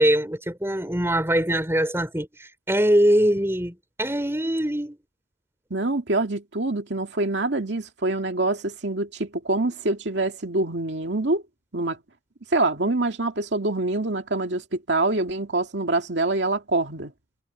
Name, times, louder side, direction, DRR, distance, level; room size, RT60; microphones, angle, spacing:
voice 1, 0.0-5.0, right 1 dB, 15° right, 5.4 m, -22 dB
voice 2, 5.7-11.4 11.7-12.0 12.5-17.1, right 2 dB, 85° right, 2.2 m, -25 dB
head